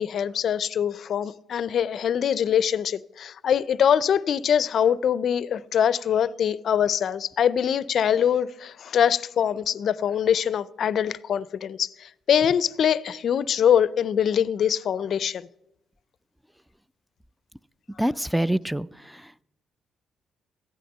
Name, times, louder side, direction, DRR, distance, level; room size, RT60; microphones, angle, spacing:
voice 1, 0.0-15.5, left 8 dB, 60° left, 0.4 m, -23 dB
voice 2, 18.0-18.9, right 1 dB, 5° right, 0.3 m, -24 dB
14.0 x 9.3 x 5.4 m
cardioid pair, 90°, 0 cm